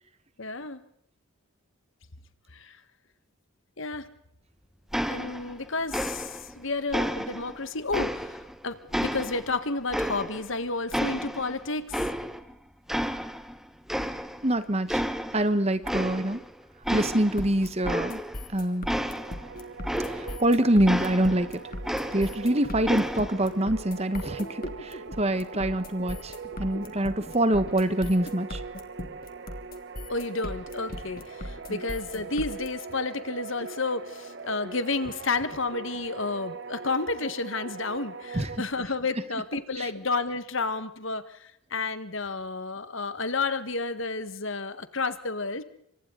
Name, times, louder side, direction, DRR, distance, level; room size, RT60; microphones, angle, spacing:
voice 1, 0.4-0.8 2.5-2.8 3.8-4.1 5.1-12.0 30.1-45.6, left 3 dB, 60° left, 11 dB, 1.6 m, -31 dB
sound 1, 4.9-5.6 5.9-6.5 6.9-8.5 8.9-10.6 10.9-12.5 12.9-13.6 13.9-14.5 14.9-15.5 15.8-16.5 16.8-20.5 20.9-22.5 22.8-23.5, equal, ahead, 1.4 m, -31 dB
voice 2, 14.4-15.0 15.3-16.4 16.9-18.2 18.5-18.9 20.1-21.6 22.1-26.3 26.6-28.6 31.7-31.8 38.3-38.5 39.8-39.9, right 1 dB, 30° right, 12 dB, 1.3 m, -25 dB
sound 2, 17.4-32.7, left 1 dB, 40° left, 3.1 m, -38 dB
sound 3, 19.1-38.6, right 5 dB, 55° right, 1.2 m, -42 dB
28.5 x 25.0 x 4.0 m, 0.70 s
head